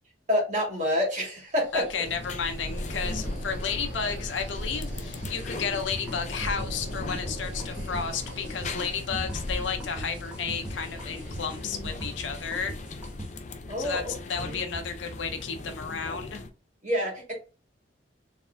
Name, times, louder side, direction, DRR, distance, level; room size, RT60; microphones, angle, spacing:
voice 1, 0.3-1.8 13.7-14.1 14.4-14.6 16.8-17.3, left 1 dB, 40° right, -2 dB, 2.0 m, -27 dB
sound 1, 1.5-13.3, equal, 75° right, 2.2 m, -39 dB
voice 2, 1.7-12.7 13.8-16.4, left 6 dB, 85° left, 7 dB, 0.6 m, -32 dB
sound 2, 2.0-16.5, left 3 dB, 40° left, 0.5 m, -39 dB
sound 3, 5.2-13.3, equal, 5° right, 1.2 m, -40 dB
4.0 x 3.5 x 2.6 m, 0.34 s
head